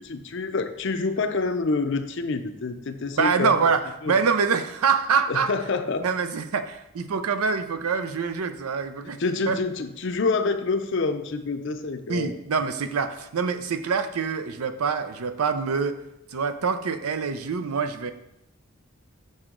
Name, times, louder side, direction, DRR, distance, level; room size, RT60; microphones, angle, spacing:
voice 1, 0.0-3.6 4.0-4.1 5.3-6.0 9.2-12.3, left 3 dB, 55° left, 9 dB, 0.5 m, -27 dB
voice 2, 3.1-5.5 6.0-9.2 9.5-9.6 12.1-16.0 16.3-18.1, right 5 dB, 85° right, 10 dB, 0.6 m, -25 dB
6.3 x 6.0 x 3.8 m, 0.86 s
head